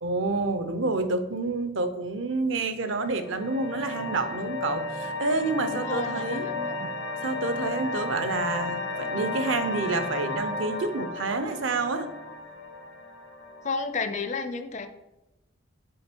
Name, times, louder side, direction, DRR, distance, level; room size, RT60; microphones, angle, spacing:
voice 1, 0.0-6.5 7.2-12.1, right 3 dB, 65° right, 9 dB, 0.6 m, -28 dB
sound 1, 2.8-13.8, left 2 dB, 80° left, 1.3 m, -34 dB
voice 2, 5.6-6.9 13.6-14.9, left 4 dB, 35° left, 9 dB, 0.4 m, -32 dB
6.4 x 4.2 x 4.4 m, 0.99 s
head